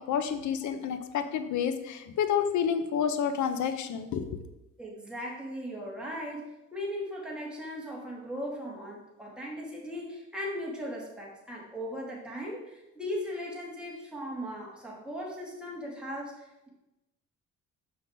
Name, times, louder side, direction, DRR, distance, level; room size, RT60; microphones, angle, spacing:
voice 1, 0.1-4.4, left 8 dB, 70° left, 9 dB, 0.8 m, -29 dB
voice 2, 4.8-6.4 6.7-16.7, equal, 5° right, -4 dB, 2.7 m, -38 dB
6.2 x 5.7 x 4.9 m, 0.96 s
cardioid pair, 90°, 30 cm